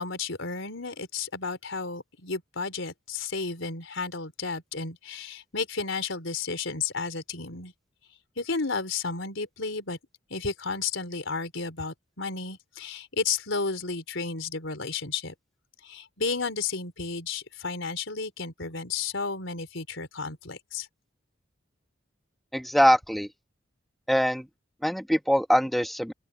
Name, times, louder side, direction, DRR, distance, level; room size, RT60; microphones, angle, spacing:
voice 1, 0.0-7.7 8.4-10.0 10.3-15.3 15.8-20.9, left 4 dB, 75° left, 4.0 m, -32 dB
voice 2, 22.5-23.3 24.1-24.5 24.8-26.1, equal, ahead, 1.5 m, -23 dB
open air
head